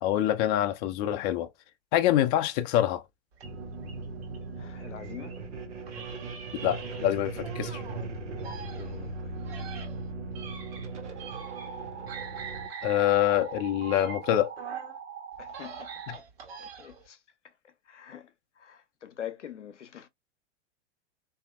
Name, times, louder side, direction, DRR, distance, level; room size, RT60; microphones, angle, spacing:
voice 1, 0.0-1.5 1.9-3.0 6.6-7.8 12.8-14.5, left 12 dB, 35° left, 0.5 m, -25 dB
sound 1, 3.4-5.4 5.9-8.0 8.4-11.8 12.1-15.0 15.4-17.1, right 6 dB, 55° right, 1.4 m, -45 dB
sound 2, 3.4-12.7, right 3 dB, 85° right, 0.9 m, -38 dB
voice 2, 4.6-5.4 8.7-9.3 15.4-16.3 16.6-20.1, left 10 dB, 85° left, 0.7 m, -45 dB
sound 3, 11.2-16.2, right 7 dB, 25° right, 1.0 m, -42 dB
3.4 x 2.7 x 2.3 m
figure-of-eight pair, 100°, 35 cm